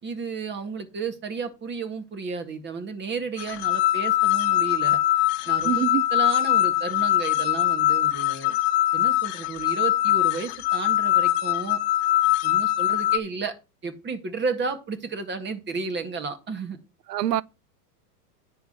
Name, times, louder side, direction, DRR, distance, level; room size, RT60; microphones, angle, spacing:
voice 1, 0.0-5.0 5.5-5.8 6.1-8.5 8.9-11.8 12.4-13.5 13.8-16.8, right 4 dB, 20° right, 2.0 m, -32 dB
sound 1, 3.4-13.2, left 14 dB, 50° left, 1.1 m, -22 dB
voice 2, 5.6-6.0 17.1-17.4, right 12 dB, 80° right, 0.7 m, -24 dB
10.5 x 3.8 x 7.4 m
hypercardioid pair, 115°, 48 cm